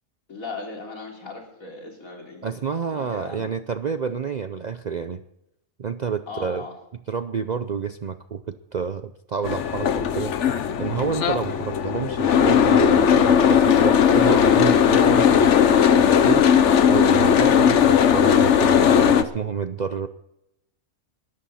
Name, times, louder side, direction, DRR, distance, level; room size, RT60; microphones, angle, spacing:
voice 1, 0.3-2.5 2.9-3.5 6.3-6.8, left 4 dB, 80° left, 0 dB, 3.7 m, -37 dB
voice 2, 2.4-5.2 5.8-6.6 7.1-15.5 16.0-16.5 16.9-20.1, right 6 dB, 55° right, 10 dB, 0.5 m, -29 dB
Boat Water vehicle, 9.4-19.2, left 8 dB, 60° left, 1.1 m, -17 dB
21.0 x 12.0 x 4.2 m, 0.82 s
omnidirectional pair, 1.4 m